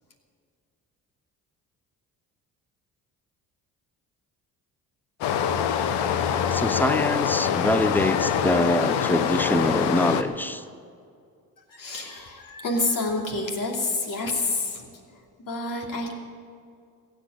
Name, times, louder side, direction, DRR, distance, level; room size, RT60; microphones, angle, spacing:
Stream, 5.2-10.2, left 8 dB, 75° left, 1.0 m, -24 dB
voice 1, 6.5-10.6, left 1 dB, 5° left, 13 dB, 0.7 m, -24 dB
voice 2, 11.7-14.9 15.4-16.2, left 2 dB, 50° left, 1 dB, 2.9 m, -28 dB
16.0 x 8.4 x 8.2 m, 2.2 s
hypercardioid pair, 60°, 41 cm